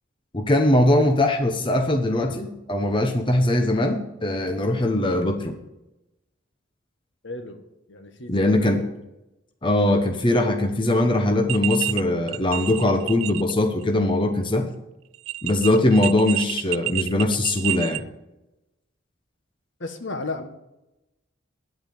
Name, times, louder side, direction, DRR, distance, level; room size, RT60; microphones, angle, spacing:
voice 1, 0.3-5.6 8.3-8.8 9.6-14.7 15.4-18.0, left 1 dB, 25° left, 4 dB, 0.9 m, -21 dB
voice 2, 7.2-8.9 19.8-20.5, left 3 dB, 60° left, 7 dB, 1.4 m, -34 dB
sound 1, 11.5-12.0 12.3-13.5 13.8-13.9 15.1-18.0, right 17 dB, 75° right, 0.3 m, -29 dB
9.7 x 8.5 x 9.3 m, 0.93 s
head